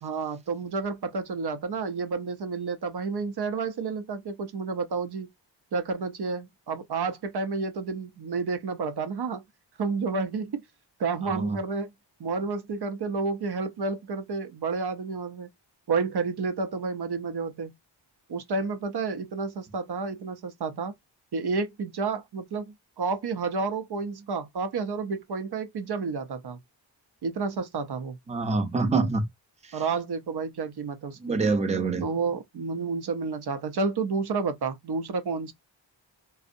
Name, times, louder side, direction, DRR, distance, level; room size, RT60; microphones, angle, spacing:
voice 1, 0.0-5.3 5.7-9.4 9.8-10.6 11.0-11.9 12.2-15.5 15.9-17.7 18.3-20.9 21.3-26.6 27.2-28.2 29.7-31.4 32.0-35.5, right 4 dB, 60° right, 0.6 m, -30 dB
voice 2, 11.2-11.6 28.3-29.2 31.2-32.1, right 3 dB, 15° right, 0.5 m, -25 dB
2.5 x 2.0 x 2.5 m
wide cardioid pair, 70°, 45 cm